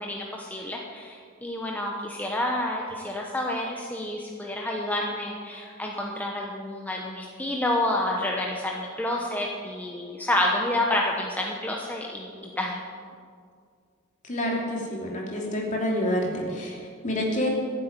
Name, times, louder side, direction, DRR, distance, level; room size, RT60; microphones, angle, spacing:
voice 1, 0.0-12.8, left 1 dB, 10° left, -1 dB, 1.0 m, -29 dB
voice 2, 14.3-16.7 17.0-17.5, left 1 dB, 40° left, -2 dB, 3.1 m, -27 dB
14.0 x 8.0 x 9.0 m, 2.1 s
head